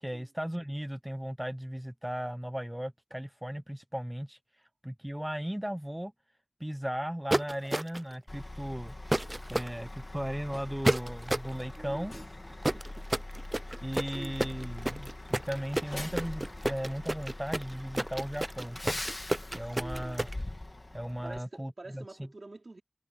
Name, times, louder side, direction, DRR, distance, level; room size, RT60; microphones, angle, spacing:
voice 1, 0.0-4.4 4.8-6.1 6.6-8.9 9.5-12.1 13.8-19.0 19.5-20.3 20.9-22.0, equal, 10° right, 0.8 m, -36 dB
sound 1, 7.3-8.1 9.1-9.7 10.8-11.5 12.6-20.3, right 1 dB, 25° right, 0.5 m, -30 dB
Truck, 8.3-21.4, left 1 dB, 40° left, 2.5 m, -42 dB
voice 2, 11.8-12.2 12.5-13.1 13.7-13.8 14.0-14.4 19.6-20.2 21.2-22.8, right 2 dB, 65° right, 3.6 m, -47 dB
wide cardioid pair, 65°, 0 cm